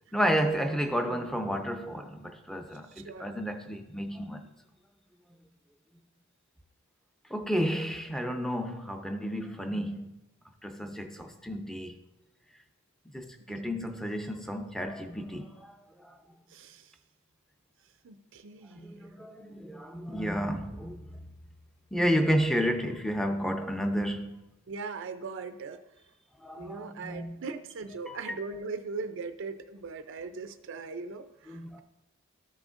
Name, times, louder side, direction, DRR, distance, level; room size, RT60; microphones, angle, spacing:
voice 1, 0.1-4.5 7.3-10.1 10.6-12.0 13.1-15.7 16.0-16.1 18.8-21.2 21.9-24.4 26.4-27.4 28.1-28.4 31.5-31.8, equal, ahead, 0.6 m, -31 dB
voice 2, 2.9-3.3 13.5-13.8 16.5-16.9 18.0-19.0 24.7-25.8 26.5-31.8, right 4 dB, 60° right, 0.5 m, -40 dB
13.0 x 6.2 x 2.5 m
head